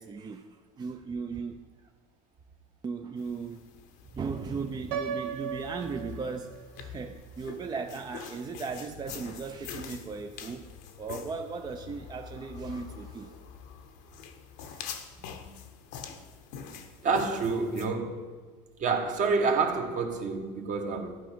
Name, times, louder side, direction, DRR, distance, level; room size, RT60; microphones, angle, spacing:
voice 1, 0.0-1.9 2.8-3.7 4.1-10.7 11.0-13.4 14.6-15.3, right 5 dB, 25° right, 0.4 m, -37 dB
sound 1, 3.2-17.9, left 7 dB, 70° left, 0.9 m, -45 dB
Piano, 4.9-6.9, right 7 dB, 70° right, 0.8 m, -36 dB
voice 2, 17.0-18.2 18.8-21.2, right 4 dB, 45° right, 1.2 m, -28 dB
11.5 x 4.8 x 4.4 m
hypercardioid pair, 85°, 18 cm